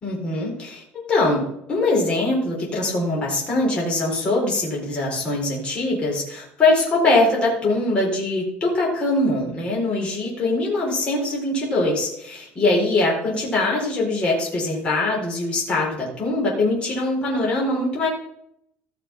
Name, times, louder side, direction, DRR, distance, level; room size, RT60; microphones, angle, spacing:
voice 1, 0.0-18.1, left 2 dB, 25° left, -3 dB, 4.3 m, -22 dB
15.0 x 6.0 x 5.9 m, 0.76 s
cardioid pair, 170°, 4 cm